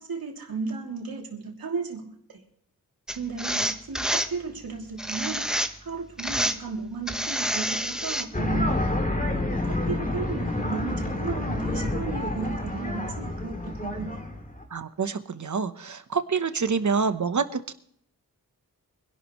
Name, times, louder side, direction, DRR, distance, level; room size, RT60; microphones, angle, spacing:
voice 1, 0.0-2.4 3.1-5.5 5.8-8.7 9.3-14.1, right 4 dB, 80° right, 1 dB, 2.9 m, -34 dB
sound 1, 3.1-4.3 5.0-5.9 6.2-6.6 7.1-8.3, equal, ahead, 0.9 m, -28 dB
sound 2, 8.3-14.6, left 2 dB, 25° left, 2.5 m, -29 dB
voice 2, 14.7-17.7, right 5 dB, 55° right, 10 dB, 1.0 m, -27 dB
24.5 x 12.0 x 3.1 m, 0.65 s
wide cardioid pair, 105°, 35 cm